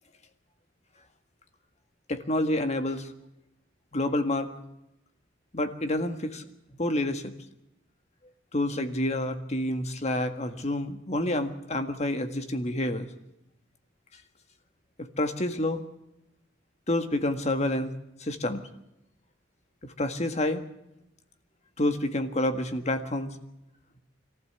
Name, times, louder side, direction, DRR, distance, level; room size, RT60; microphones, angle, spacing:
voice 1, 2.1-3.1 3.9-4.5 5.5-6.5 6.8-7.3 8.5-13.1 15.0-15.8 16.9-17.9 18.2-18.7 19.8-20.6 21.8-23.3, left 1 dB, 35° left, 7 dB, 1.8 m, -28 dB
23.0 x 15.0 x 8.2 m, 0.84 s
head